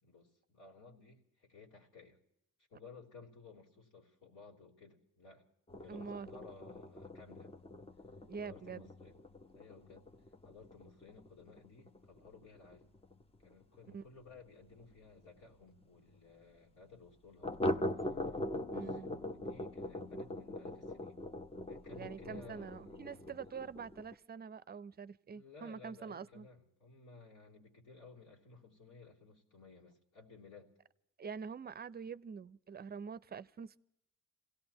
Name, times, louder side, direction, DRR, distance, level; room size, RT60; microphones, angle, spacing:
voice 1, 0.0-2.2 2.7-5.5 5.8-7.5 8.4-9.2 9.5-10.1 10.4-12.9 13.4-17.6 18.0-18.2 18.6-19.0 19.3-21.2 21.7-23.2 25.3-30.7, left 4 dB, 75° left, -3 dB, 3.5 m, -57 dB
sound 1, 5.7-14.9 15.2-15.3 15.7-15.8 16.1-16.2 17.4-24.1, left 1 dB, 20° left, 0.8 m, -42 dB
voice 2, 5.9-6.3 8.2-8.9 13.9-14.0 18.7-19.1 21.9-26.5 31.2-33.8, right 6 dB, 30° right, 17 dB, 0.6 m, -45 dB
27.5 x 17.5 x 3.0 m, 0.81 s
cardioid pair, 90°, 30 cm